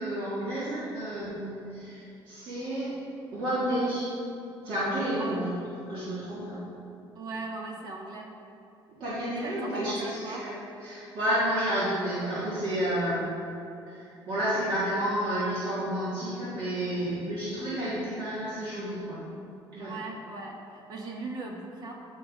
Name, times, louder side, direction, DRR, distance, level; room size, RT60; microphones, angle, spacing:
voice 1, 0.0-2.9 3.3-4.1 4.6-5.5 5.9-6.6 9.0-10.5 10.8-13.3 13.9-19.2 19.7-19.9, equal, 65° right, -10 dB, 1.7 m, -30 dB
voice 2, 5.2-5.6 7.1-8.3 9.4-10.4 19.8-21.9, right 3 dB, 50° right, 1 dB, 0.8 m, -38 dB
9.8 x 3.8 x 4.9 m, 2.7 s
cardioid pair, 160°, 9 cm